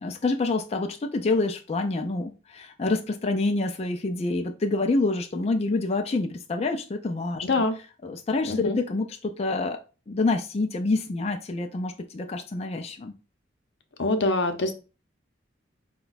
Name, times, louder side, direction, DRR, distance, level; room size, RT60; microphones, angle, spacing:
voice 1, 0.0-7.5 8.0-9.8 10.1-13.1, left 3 dB, 35° left, 0.4 m, -27 dB
voice 2, 7.4-7.8 8.5-8.8 14.0-14.7, left 2 dB, 65° left, 0.7 m, -24 dB
5.0 x 2.3 x 3.9 m
head